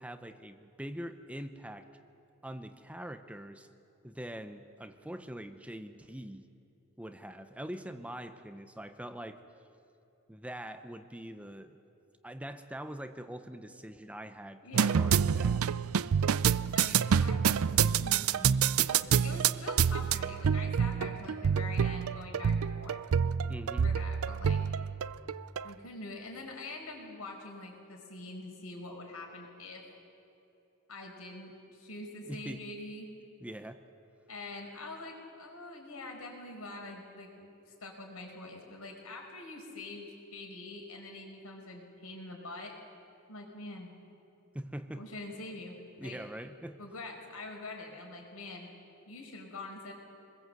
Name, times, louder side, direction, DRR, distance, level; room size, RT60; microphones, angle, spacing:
voice 1, 0.0-1.9 2.4-3.7 4.0-6.5 7.0-9.4 10.3-11.8 12.2-15.6 23.5-23.9 32.2-32.7 33.4-33.8 44.5-45.0 46.0-46.8, right 1 dB, 5° right, 8 dB, 0.8 m, -43 dB
voice 2, 14.6-15.0 16.7-18.5 18.9-23.0 23.8-24.6 25.6-29.8 30.9-33.1 34.3-37.5 37.8-42.7 43.3-43.9 44.9-46.2 46.8-48.7 49.1-49.9, left 2 dB, 85° left, 1 dB, 5.2 m, -44 dB
sound 1, 14.7-25.7, right 7 dB, 75° right, 0.5 m, -28 dB
26.0 x 21.0 x 7.9 m, 2.8 s
head